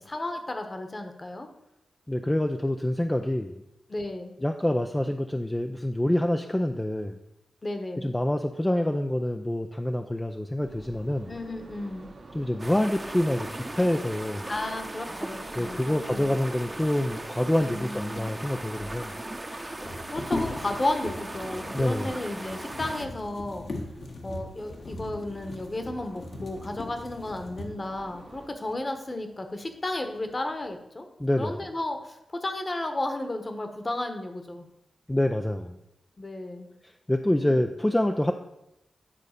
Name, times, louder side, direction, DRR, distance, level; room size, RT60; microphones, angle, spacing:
voice 1, 0.0-1.5 3.9-4.4 7.6-8.1 11.3-12.1 14.5-16.4 17.6-18.3 20.1-23.7 24.2-31.1 31.4-34.7 36.2-36.7 37.3-37.7, left 2 dB, 30° left, 6 dB, 1.2 m, -33 dB
voice 2, 2.1-3.6 4.4-7.2 8.0-11.3 12.3-14.5 15.6-19.1 21.7-22.1 31.2-31.5 35.1-35.8 36.8-38.3, left 1 dB, 10° left, 5 dB, 0.5 m, -26 dB
sound 1, 10.6-28.5, right 2 dB, 45° right, 1.1 m, -50 dB
sound 2, 12.6-23.1, right 1 dB, 20° right, 0.9 m, -38 dB
sound 3, 19.6-28.0 28.7-28.8 29.2-29.9 30.2-30.8, left 2 dB, 65° left, 1.5 m, -39 dB
9.9 x 4.0 x 6.6 m, 0.86 s
wide cardioid pair, 85°, 0 cm